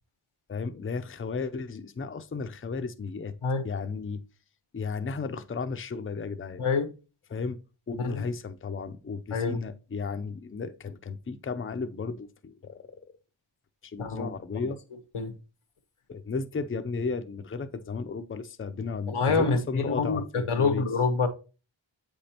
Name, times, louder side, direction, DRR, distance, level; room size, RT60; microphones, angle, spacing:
voice 1, 0.5-3.3 3.6-4.2 4.7-6.6 7.3-7.6 7.9-13.0 13.8-14.8 16.1-20.8, left 4 dB, 25° left, 0.5 m, -34 dB
voice 2, 14.0-14.7 15.1-15.3 19.1-21.3, left 4 dB, 90° left, 1.1 m, -27 dB
7.8 x 5.1 x 2.9 m
wide cardioid pair, 55°, 49 cm